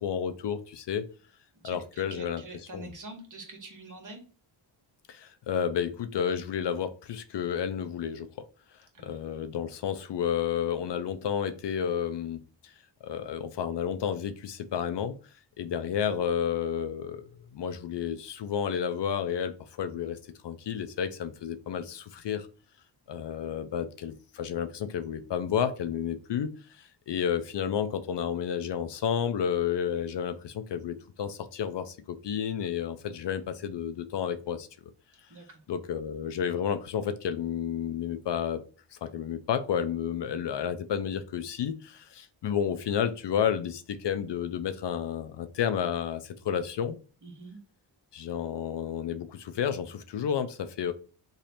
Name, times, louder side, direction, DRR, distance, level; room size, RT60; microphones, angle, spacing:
voice 1, 0.0-1.1 1.6-2.4 2.7-2.9 5.1-8.3 9.0-12.7 13.0-15.2 15.6-17.3 17.5-22.5 23.1-34.7 35.7-38.6 38.9-47.0 48.1-50.9, left 8 dB, 60° left, 0.5 m, -31 dB
voice 2, 1.6-4.2 8.9-9.2 35.3-35.6 47.2-47.6, right 3 dB, 40° right, 1.5 m, -45 dB
3.1 x 2.7 x 4.2 m
cardioid pair, 75°, 48 cm